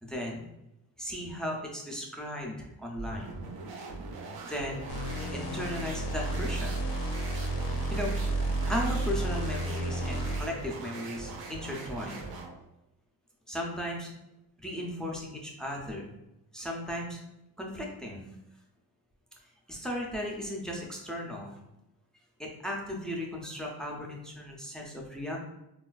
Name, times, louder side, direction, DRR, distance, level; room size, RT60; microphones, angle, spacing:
voice 1, 0.0-0.4 1.0-3.3 4.4-4.9 5.3-6.8 7.9-8.1 8.7-12.2 13.5-14.1 14.6-16.1 16.5-17.2 17.6-18.2 19.7-21.6 22.4-25.4, equal, ahead, -2 dB, 0.3 m, -36 dB
sound 1, 2.9-12.6, right 3 dB, 65° right, 0.5 m, -41 dB
sound 2, 4.9-10.6, right 1 dB, 90° left, 0.6 m, -32 dB
4.1 x 2.2 x 2.3 m, 0.90 s
wide cardioid pair, 170°, 39 cm